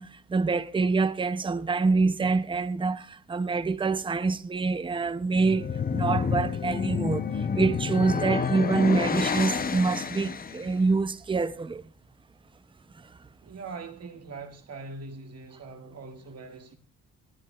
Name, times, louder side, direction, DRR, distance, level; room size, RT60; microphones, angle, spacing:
voice 1, 0.0-5.7 5.9-11.8, right 4 dB, 15° right, 0.6 m, -26 dB
sound 1, 5.3-10.7, left 6 dB, 30° left, 0.7 m, -29 dB
voice 2, 13.4-16.8, right 4 dB, 55° right, 2.0 m, -42 dB
19.5 x 10.5 x 2.4 m
cardioid pair, 90°, 30 cm